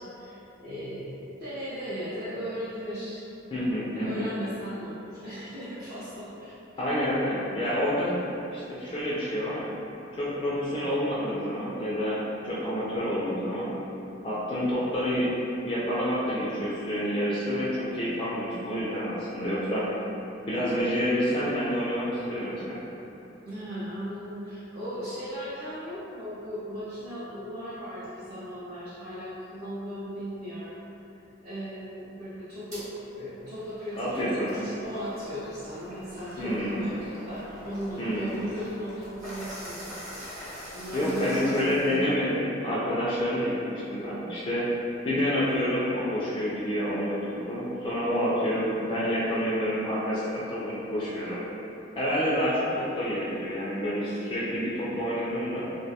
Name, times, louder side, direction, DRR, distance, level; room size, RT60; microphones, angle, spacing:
voice 1, 0.0-3.2 3.9-6.5 23.4-30.8 31.4-32.9 33.2-39.9 40.7-42.1, equal, 50° right, -13 dB, 0.6 m, -37 dB
voice 2, 3.5-4.3 6.8-8.1 8.5-9.7 10.1-13.7 14.2-15.3 15.6-19.8 20.5-22.8 34.0-34.5 36.4-36.8 38.0-38.3 40.5-44.6 45.0-51.4 52.0-55.6, equal, 25° left, -9 dB, 0.3 m, -28 dB
sound 1, 32.7-32.8 33.3-42.1, equal, 35° right, 0.9 m, -44 dB
2.3 x 2.2 x 2.7 m, 2.9 s
head